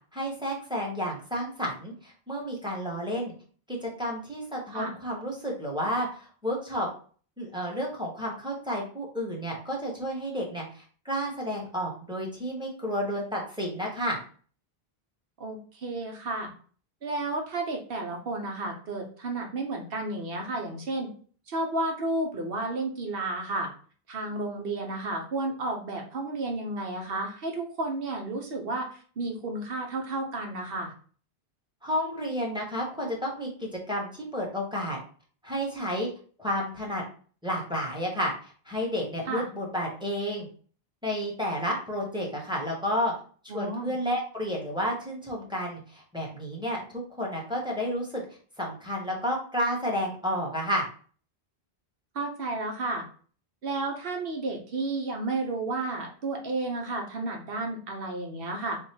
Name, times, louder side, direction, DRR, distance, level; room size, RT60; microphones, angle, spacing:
voice 1, 0.1-3.3 3.7-6.9 7.4-14.2 31.8-35.0 35.4-36.1 36.4-37.0 37.4-40.5 41.0-43.1 43.5-46.8 47.2-48.2 48.6-50.8, equal, 5° right, -3 dB, 1.0 m, -31 dB
voice 2, 15.4-16.5 17.0-21.1 21.5-23.7 24.1-30.9 39.3-39.5 43.5-43.9 52.1-53.1 53.6-58.8, right 2 dB, 70° right, 2 dB, 1.0 m, -32 dB
3.4 x 2.2 x 4.3 m, 0.42 s
omnidirectional pair, 1.0 m